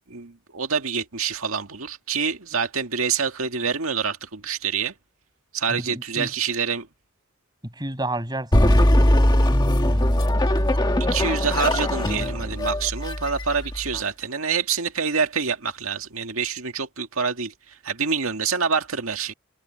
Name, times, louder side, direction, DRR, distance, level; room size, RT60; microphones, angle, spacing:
voice 1, 0.1-4.9 5.5-6.9 11.0-17.5 17.8-19.3, right 6 dB, 85° right, 2.0 m, -26 dB
voice 2, 5.7-6.3 7.6-9.1, right 1 dB, 20° right, 7.9 m, -31 dB
sound 1, 8.5-14.0, left 1 dB, 20° left, 1.6 m, -20 dB
head